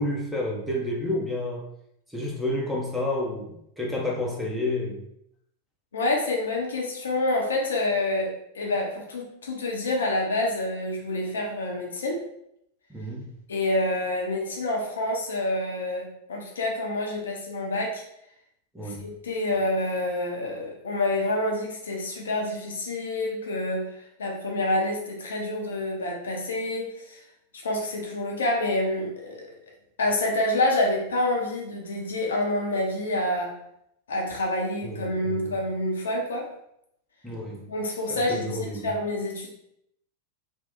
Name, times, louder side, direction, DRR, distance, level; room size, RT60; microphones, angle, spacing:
voice 1, 0.0-1.7 2.1-5.1 12.9-13.3 18.7-19.1 34.8-35.5 37.2-37.7 38.1-38.9, left 1 dB, ahead, -3 dB, 0.8 m, -30 dB
voice 2, 5.9-12.2 13.5-18.0 18.8-23.9 24.2-27.2 27.6-29.5 30.0-33.5 34.1-36.5 37.7-39.5, left 1 dB, 65° left, 0 dB, 0.6 m, -27 dB
3.0 x 2.2 x 3.6 m, 0.76 s
figure-of-eight pair, 90°, 0 cm